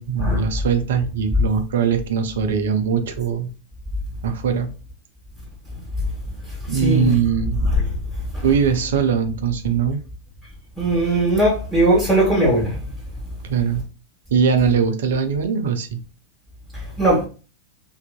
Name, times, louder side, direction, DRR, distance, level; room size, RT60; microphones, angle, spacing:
voice 1, 0.0-3.5 4.2-4.7 6.7-7.6 8.4-10.0 13.5-13.8 14.3-16.0, right 6 dB, 60° right, 0.4 m, -21 dB
voice 2, 6.7-7.1 7.6-7.9 8.3-8.4 10.8-12.8 17.0-17.3, right 1 dB, 5° left, 1.3 m, -18 dB
2.7 x 2.5 x 2.4 m
figure-of-eight pair, 90°, 0 cm